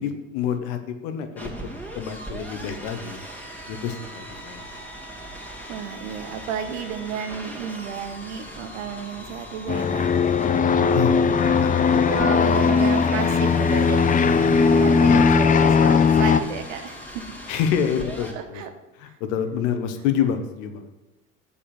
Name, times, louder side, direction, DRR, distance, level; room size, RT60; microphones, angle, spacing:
voice 1, 0.0-1.5 1.9-3.2 3.7-4.6 10.7-11.9 15.0-15.3 17.5-18.6 19.0-20.9, left 8 dB, 70° left, 8 dB, 1.2 m, -27 dB
sound 1, 1.4-18.3, right 1 dB, 5° left, 2.2 m, -39 dB
voice 2, 5.7-10.1 11.4-14.2 14.6-17.3 18.3-18.7 19.1-19.2, right 7 dB, 75° right, 8 dB, 1.1 m, -33 dB
sound 2, 9.7-16.4, left 5 dB, 20° left, 0.6 m, -18 dB
6.9 x 5.2 x 6.8 m, 1.0 s
hypercardioid pair, 70°, 39 cm